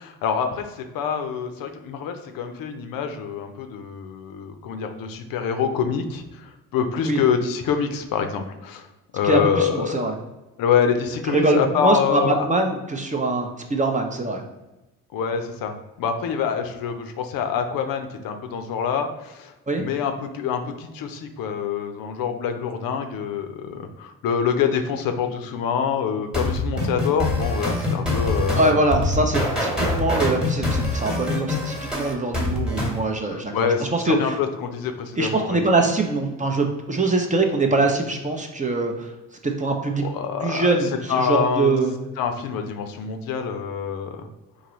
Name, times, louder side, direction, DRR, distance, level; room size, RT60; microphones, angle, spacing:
voice 1, 0.0-8.9 9.1-10.2 10.6-12.5 15.1-28.8 33.3-35.6 40.0-41.7 42.2-44.3, left 7 dB, 60° left, 6 dB, 0.6 m, -26 dB
voice 2, 9.2-10.1 11.3-14.4 19.7-19.8 28.6-34.3 35.2-39.1 39.4-40.1 40.4-40.9 41.2-41.9, right 2 dB, 20° right, 3 dB, 0.6 m, -23 dB
sound 1, 26.3-33.0, left 2 dB, ahead, 1.2 m, -24 dB
3.8 x 2.6 x 3.0 m, 1.0 s
hypercardioid pair, 60°, 39 cm